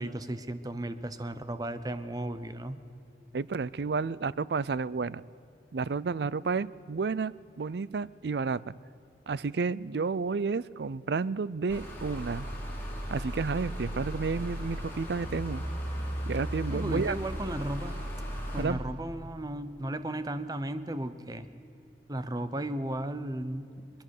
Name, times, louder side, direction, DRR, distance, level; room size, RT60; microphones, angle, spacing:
voice 1, 0.0-2.8 16.7-17.9 18.5-21.5 22.1-23.7, right 1 dB, 20° right, 11 dB, 0.9 m, -35 dB
voice 2, 3.3-5.2 5.7-8.6 9.3-12.5 13.1-15.6 16.3-17.2 18.6-18.8, right 4 dB, 65° right, 19 dB, 0.5 m, -31 dB
sound 1, 11.7-18.6, equal, 15° left, 4.3 m, -36 dB
22.0 x 22.0 x 6.7 m, 2.6 s
head